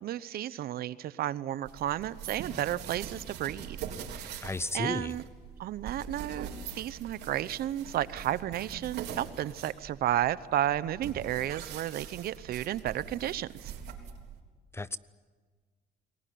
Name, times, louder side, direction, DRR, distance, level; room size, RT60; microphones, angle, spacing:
voice 1, 0.0-3.8 4.1-4.5 4.7-5.2 5.6-6.5 6.7-13.7, right 12 dB, 65° right, 17 dB, 0.9 m, -32 dB
sound 1, 1.6-14.4, right 8 dB, 80° right, 3.7 m, -43 dB
voice 2, 4.4-5.1 14.7-15.0, left 3 dB, 15° left, 17 dB, 0.7 m, -33 dB
28.5 x 19.5 x 9.4 m, 1.5 s
cardioid pair, 110°, 17 cm